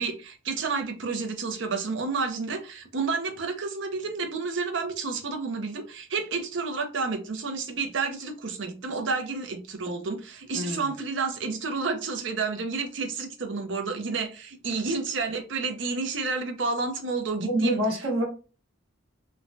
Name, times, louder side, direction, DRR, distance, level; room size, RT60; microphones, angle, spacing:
voice 1, 0.0-17.8, right 4 dB, 60° right, 0.6 m, -30 dB
voice 2, 10.5-11.0 17.4-18.2, right 1 dB, 85° right, 1.0 m, -26 dB
3.1 x 2.2 x 2.6 m
head